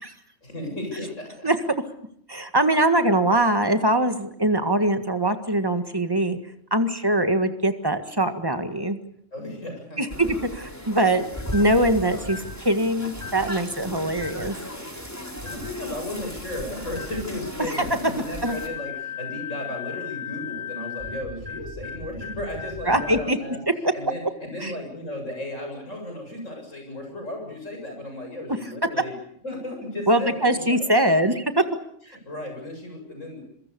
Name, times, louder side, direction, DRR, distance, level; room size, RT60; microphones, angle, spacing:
voice 1, 0.4-1.5 9.3-10.3 15.2-23.6 23.9-29.1 29.4-30.7 32.1-33.4, left 1 dB, 90° left, 3 dB, 8.0 m, -35 dB
voice 2, 2.0-6.4 6.7-9.0 10.0-14.5 17.7-17.8 18.4-18.6 22.9-23.4 24.6-24.7 30.1-31.6, right 1 dB, 20° right, 8 dB, 1.8 m, -22 dB
sound 1, 10.1-18.7, equal, 15° left, 4.0 m, -37 dB
sound 2, 11.5-11.8 12.2-12.6 13.1-13.5 14.2-14.5 15.4-15.7 16.9-17.2 18.5-23.2, left 5 dB, 40° right, 3.5 m, -36 dB
26.0 x 23.5 x 6.9 m, 0.69 s
omnidirectional pair, 1.3 m